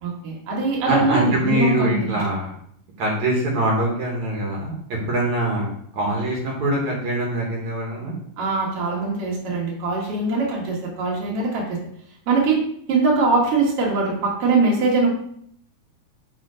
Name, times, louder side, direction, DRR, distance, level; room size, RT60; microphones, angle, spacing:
voice 1, 0.0-2.2 8.4-11.8 12.3-12.6 12.9-15.1, right 3 dB, 55° right, -2 dB, 2.3 m, -22 dB
voice 2, 0.9-2.5 3.0-5.7 5.9-8.2, right 1 dB, 70° right, -2 dB, 2.7 m, -23 dB
5.2 x 5.1 x 4.9 m, 0.67 s
omnidirectional pair, 3.6 m